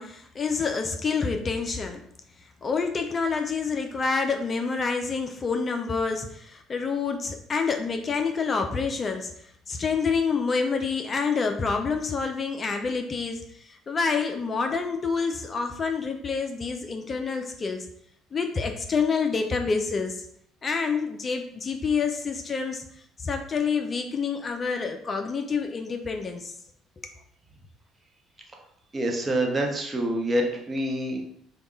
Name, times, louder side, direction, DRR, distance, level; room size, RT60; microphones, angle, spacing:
voice 1, 0.0-2.0 2.4-17.9 18.3-20.3 20.6-26.5, left 5 dB, 35° left, 5 dB, 0.4 m, -28 dB
voice 2, 28.9-31.2, right 1 dB, 25° right, 1 dB, 1.0 m, -26 dB
3.5 x 2.3 x 3.9 m, 0.69 s
hypercardioid pair, 55°, 0 cm